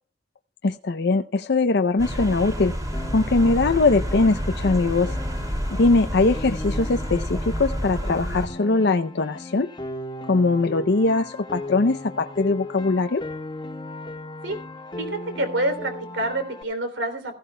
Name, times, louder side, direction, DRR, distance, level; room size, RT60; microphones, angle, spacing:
voice 1, 0.6-2.7 3.1-5.1 5.7-9.7 10.3-13.2, left 3 dB, 60° left, 8 dB, 0.6 m, -21 dB
sound 1, 2.0-8.5, equal, 20° right, 2.6 m, -29 dB
Piano, 2.9-16.6, left 1 dB, 25° left, 1.4 m, -37 dB
voice 2, 15.0-17.3, right 1 dB, 75° right, 8 dB, 3.2 m, -27 dB
16.0 x 15.5 x 2.3 m, 0.39 s
head